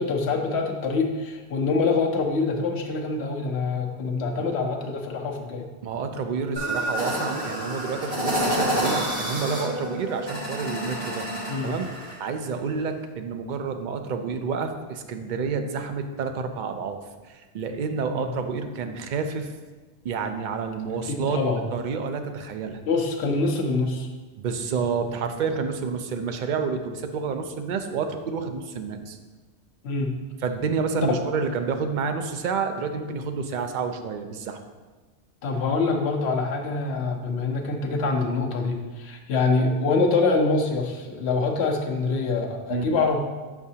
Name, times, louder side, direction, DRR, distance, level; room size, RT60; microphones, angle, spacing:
voice 1, 0.0-5.7 11.5-11.7 18.1-18.3 20.9-21.7 22.9-24.1 29.8-30.1 31.1-31.2 33.5-33.6 35.4-43.2, left 3 dB, 70° left, 1 dB, 1.0 m, -25 dB
voice 2, 5.8-11.2 11.6-11.9 12.2-17.0 17.3-19.5 20.0-21.4 21.7-22.8 24.4-29.2 30.4-34.6 42.7-42.9, right 5 dB, 55° right, 6 dB, 0.5 m, -29 dB
sound 1, 6.6-12.2, equal, 35° right, 1.6 m, -28 dB
7.0 x 4.8 x 2.7 m, 1.3 s
omnidirectional pair, 1.1 m